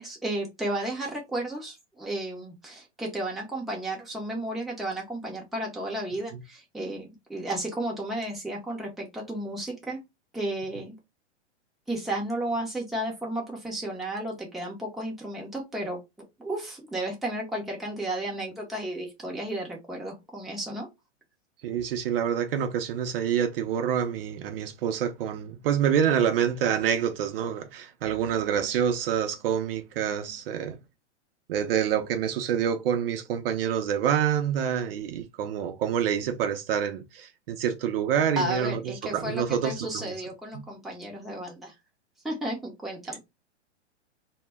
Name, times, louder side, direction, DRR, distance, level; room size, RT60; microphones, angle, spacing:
voice 1, 0.0-10.0 10.3-10.9 11.9-16.0 16.4-20.9 38.4-41.7 42.2-43.2, right 1 dB, ahead, 0.5 m, -33 dB
voice 2, 21.6-30.8 31.5-40.0 40.5-40.6, right 8 dB, 50° right, 0.5 m, -27 dB
2.1 x 2.1 x 3.4 m
hypercardioid pair, 120°, 36 cm